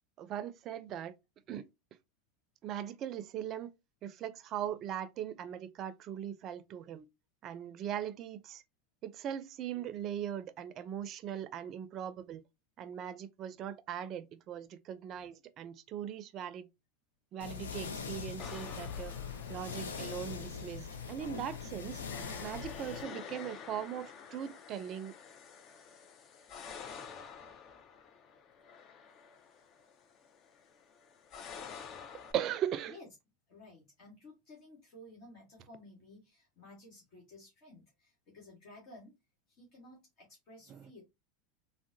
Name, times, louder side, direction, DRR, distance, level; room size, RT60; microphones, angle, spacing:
voice 1, 0.2-1.1 1.5-1.7 2.6-3.7 4.0-7.1 7.4-8.6 9.0-12.4 12.8-16.7 17.3-19.1 19.5-22.0 22.4-25.1 32.3-33.0 40.7-40.8, right 10 dB, 45° right, 0.4 m, -39 dB
sound 1, 17.4-23.0, left 6 dB, 90° left, 0.5 m, -42 dB
sound 2, 18.4-32.3, left 6 dB, 40° left, 0.5 m, -50 dB
voice 2, 33.5-39.1 39.5-41.0, left 1 dB, 55° left, 1.4 m, -55 dB
3.6 x 2.0 x 2.6 m
hypercardioid pair, 100°, 0 cm